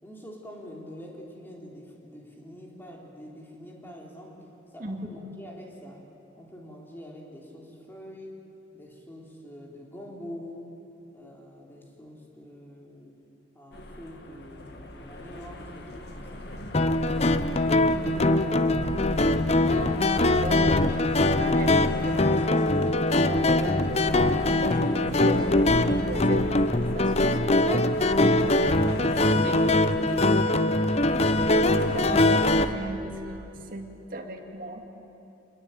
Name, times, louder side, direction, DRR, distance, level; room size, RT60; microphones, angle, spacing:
voice 1, 0.0-4.4 4.7-6.0 6.4-8.4 8.7-10.8 11.1-13.2 13.5-16.5, equal, 10° left, -2 dB, 3.8 m, -45 dB
sound 1, 13.7-32.7, left 1 dB, 60° left, 2.0 m, -37 dB
sound 2, 16.7-32.7, left 2 dB, 35° left, 0.7 m, -22 dB
voice 2, 17.9-19.1 19.6-19.9 20.4-29.7 30.0-31.2 31.7-34.9, right 1 dB, 45° right, 3 dB, 2.4 m, -38 dB
26.0 x 21.5 x 9.2 m, 2.9 s
head